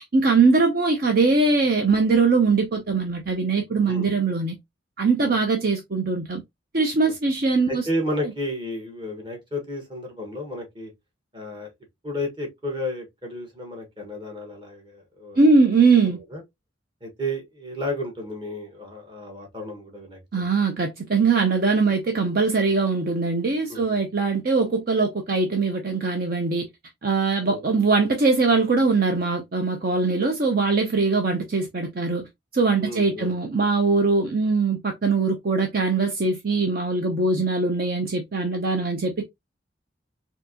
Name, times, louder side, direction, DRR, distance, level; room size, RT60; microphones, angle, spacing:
voice 1, 0.1-4.5 5.0-6.4 6.7-7.9 15.4-16.2 20.3-26.7 27.0-39.2, right 4 dB, 50° right, 0.6 m, -21 dB
voice 2, 7.7-10.9 11.3-11.7 12.0-15.5 16.1-16.4 17.0-20.4 23.7-24.0 27.4-27.8 32.8-33.3, left 1 dB, 25° right, 1.5 m, -32 dB
4.5 x 2.9 x 2.8 m
head